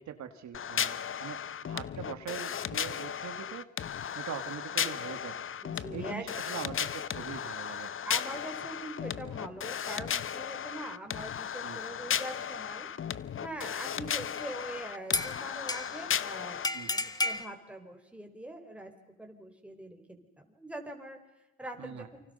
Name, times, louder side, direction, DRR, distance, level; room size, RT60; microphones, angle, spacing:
voice 1, 0.0-1.4 1.7-3.7 4.2-5.5 5.9-7.9 11.6-11.8 16.7-16.9 21.8-22.1, right 9 dB, 70° right, 8 dB, 2.0 m, -42 dB
sound 1, 0.5-16.7, left 8 dB, 45° left, 0.9 m, -35 dB
voice 2, 5.6-6.4 8.0-12.9 13.4-16.6 16.9-18.9 19.2-21.2 21.6-22.1, right 1 dB, 5° right, 3 dB, 4.4 m, -43 dB
sound 2, 14.4-14.6 15.1-16.1 16.6-17.5, left 2 dB, 15° left, 1.4 m, -32 dB
29.0 x 25.0 x 5.6 m, 1.0 s
cardioid pair, 90°, 30 cm